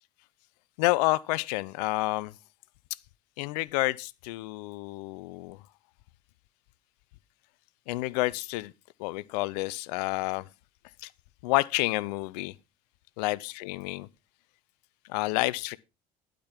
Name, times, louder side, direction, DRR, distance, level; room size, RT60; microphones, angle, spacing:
voice 1, 0.8-2.3 3.4-5.6 7.9-8.7 9.0-10.5 11.0-11.1 11.4-12.5 13.2-14.1 15.1-15.8, left 21 dB, 75° left, 0.7 m, -29 dB
12.0 x 5.2 x 5.9 m
hypercardioid pair, 65°, 21 cm